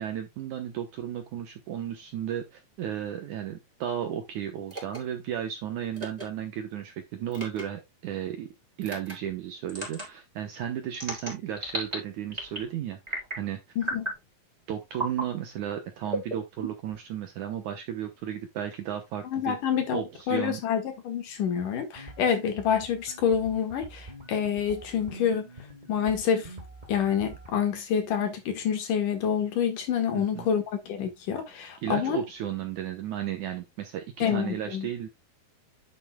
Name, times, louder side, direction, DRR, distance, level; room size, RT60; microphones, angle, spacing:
voice 1, 0.0-8.5 8.8-13.6 14.7-19.6 19.9-20.6 30.1-30.5 31.8-35.1, right 10 dB, 70° right, 2.0 m, -34 dB
sound 1, 4.7-5.0 5.9-6.2 7.3-7.6 8.8-9.1 9.7-10.1 10.9-12.0 12.3-12.7 13.1-13.4 13.8-14.2 14.9-15.3 16.1-17.0, right 1 dB, 10° right, 3.5 m, -34 dB
voice 2, 13.8-14.1 19.3-20.0 20.3-25.5 25.9-26.5 26.9-32.2 34.2-34.9, left 8 dB, 60° left, 2.9 m, -27 dB
sound 2, 21.9-27.6, right 2 dB, 90° right, 0.4 m, -46 dB
10.0 x 7.8 x 2.3 m
omnidirectional pair, 4.4 m